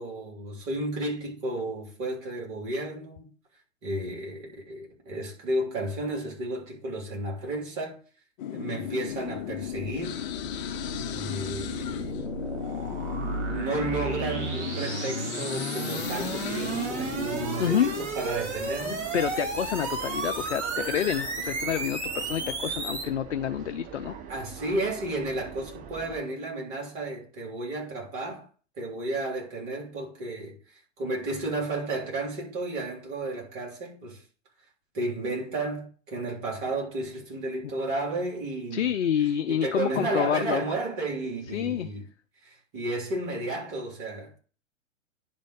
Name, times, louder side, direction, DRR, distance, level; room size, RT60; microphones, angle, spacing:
voice 1, 0.0-3.3 3.8-8.0 8.5-10.2 11.1-12.2 13.5-19.1 24.3-28.5 28.8-34.2 34.9-39.0 39.5-42.1 42.4-44.3, right 2 dB, 40° right, 3.5 m, -32 dB
sound 1, 8.4-18.1, left 11 dB, 35° left, 0.9 m, -35 dB
sound 2, 9.1-23.0, right 4 dB, 60° right, 2.8 m, -34 dB
sound 3, 16.0-26.2, right 7 dB, 20° right, 0.9 m, -42 dB
voice 2, 17.6-17.9 19.1-24.1 38.7-40.6 41.5-41.9, left 10 dB, 60° left, 0.6 m, -28 dB
10.5 x 4.0 x 4.8 m
figure-of-eight pair, 110°, 39 cm